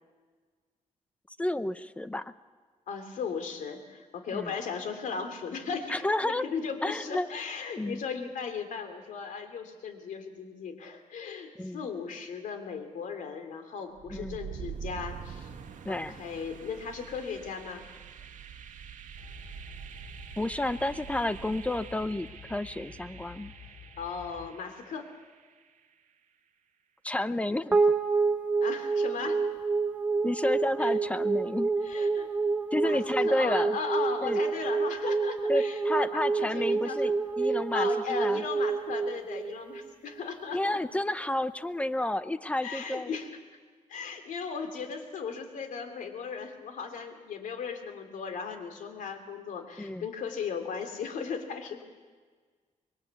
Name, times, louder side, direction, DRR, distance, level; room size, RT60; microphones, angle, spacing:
voice 1, 1.4-2.3 4.3-4.5 5.9-6.4 6.8-7.3 7.8-8.0 11.6-11.8 14.1-14.4 15.8-16.2 20.4-23.5 27.0-27.8 30.2-31.7 32.7-33.8 34.2-34.4 35.5-38.4 40.5-43.2 49.8-50.1, left 1 dB, 10° left, 13 dB, 0.7 m, -31 dB
voice 2, 2.9-15.5 15.9-17.9 24.0-25.1 28.6-29.4 30.8-31.0 31.8-32.3 32.8-40.8 42.6-43.3 43.9-51.8, left 5 dB, 85° left, 6 dB, 3.0 m, -37 dB
sound 1, 13.9-25.8, right 8 dB, 80° right, 1.7 m, -45 dB
sound 2, 19.1-24.5, left 6 dB, 35° left, 3.0 m, -50 dB
sound 3, 27.7-40.2, right 4 dB, 10° right, 1.5 m, -28 dB
25.5 x 21.5 x 8.3 m, 1.5 s
wide cardioid pair, 140°, 13 cm